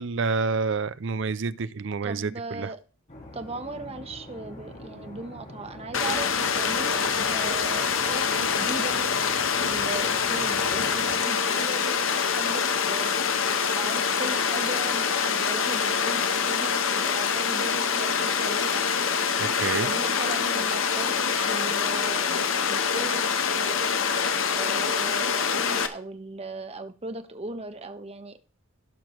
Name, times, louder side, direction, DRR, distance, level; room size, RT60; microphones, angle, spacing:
voice 1, 0.0-2.7 19.4-19.9, right 4 dB, 60° right, 0.5 m, -28 dB
voice 2, 2.0-2.8 3.3-9.1 9.6-13.2 13.8-19.1 19.8-23.2 23.5-23.8 24.5-28.4, right 2 dB, 30° right, 1.0 m, -38 dB
sound 1, 3.1-11.2, equal, 35° left, 2.2 m, -44 dB
Water, 5.9-25.9, left 6 dB, 70° left, 1.0 m, -25 dB
16.5 x 6.0 x 3.1 m
head